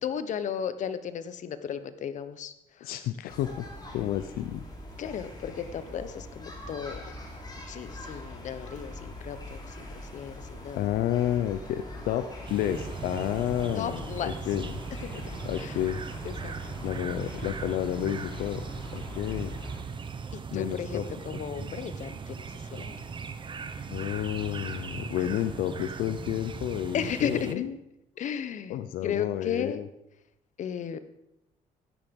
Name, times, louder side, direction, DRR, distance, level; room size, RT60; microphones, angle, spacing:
voice 1, 0.0-2.9 5.0-7.0 7.7-10.9 13.7-14.4 15.0-15.2 15.6-15.8 16.2-16.5 20.3-22.5 22.7-22.9 26.9-27.5 28.2-29.8 30.6-31.0, left 8 dB, 60° left, 12 dB, 1.1 m, -35 dB
voice 2, 2.8-3.6 3.9-4.6 10.8-14.0 14.5-14.7 15.4-16.0 16.8-18.6 18.9-19.5 20.5-21.0 21.3-21.7 23.9-27.8 28.7-29.9, left 11 dB, 90° left, 11 dB, 0.8 m, -30 dB
sound 1, 3.3-19.8, left 1 dB, 25° left, 4.3 m, -42 dB
sound 2, 12.5-27.5, right 5 dB, 35° right, 1.2 m, -39 dB
15.0 x 10.5 x 5.4 m, 0.84 s
cardioid pair, 110°, 15 cm